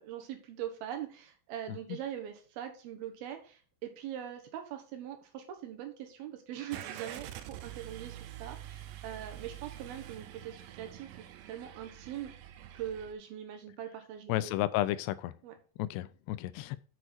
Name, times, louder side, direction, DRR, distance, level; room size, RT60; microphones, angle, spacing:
voice 1, 0.0-12.3 12.7-14.5 15.4-15.5, right 10 dB, 70° right, 2.9 m, -42 dB
Car / Engine starting, 6.7-13.1, right 12 dB, 85° right, 2.8 m, -46 dB
voice 2, 14.3-15.3 15.8-16.8, left 15 dB, 85° left, 2.7 m, -32 dB
7.9 x 6.3 x 4.3 m
omnidirectional pair, 4.8 m